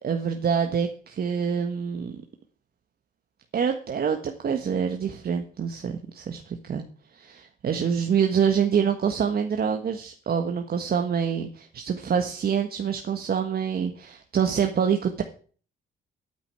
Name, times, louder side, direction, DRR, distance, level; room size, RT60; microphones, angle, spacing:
voice 1, 0.0-2.2 3.5-6.8 7.1-15.2, right 7 dB, 50° right, 5 dB, 1.5 m, -26 dB
9.6 x 8.9 x 9.0 m, 0.43 s
cardioid pair, 90°, 20 cm